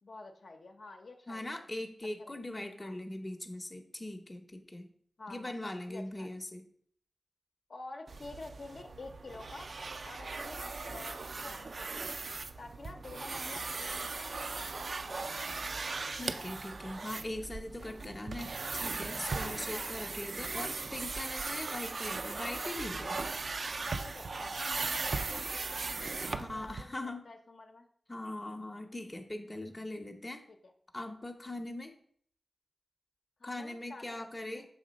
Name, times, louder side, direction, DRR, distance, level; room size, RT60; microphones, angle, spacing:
voice 1, 0.0-1.6 2.2-2.4 2.8-2.9 5.2-5.5 5.9-6.3 7.7-9.7 10.0-12.1 12.6-15.5 17.8-18.0 19.7-19.9 23.7-27.9 30.5-30.7 33.4-34.7, left 2 dB, 65° left, 4 dB, 0.7 m, -49 dB
voice 2, 1.3-4.9 5.3-6.6 16.1-23.2 26.4-27.3 28.1-30.4 30.9-31.9 33.4-34.7, left 1 dB, 20° left, 5 dB, 0.7 m, -41 dB
sound 1, 8.1-26.8, right 3 dB, 60° right, 0.3 m, -38 dB
6.3 x 3.6 x 5.1 m, 0.62 s
wide cardioid pair, 100°, 0 cm